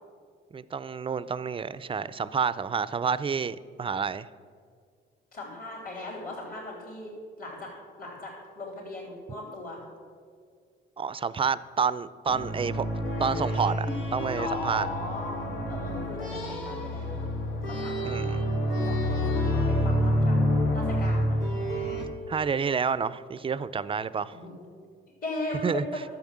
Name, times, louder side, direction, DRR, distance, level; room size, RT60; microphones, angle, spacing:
voice 1, 0.5-4.3 11.0-12.8 13.2-13.9 14.1-14.9 18.0-18.4 22.3-24.4 25.6-25.8, right 6 dB, 25° right, 16 dB, 0.4 m, -29 dB
voice 2, 5.3-7.1 7.4-7.7 8.0-9.8 14.4-17.2 17.6-18.5 18.8-21.4 24.3-24.5 25.2-25.9, left 2 dB, 50° left, -4 dB, 3.2 m, -38 dB
sound 1, 12.3-22.0, equal, 85° left, 2.2 m, -28 dB
12.0 x 7.1 x 7.3 m, 2.1 s
cardioid pair, 90°, 20 cm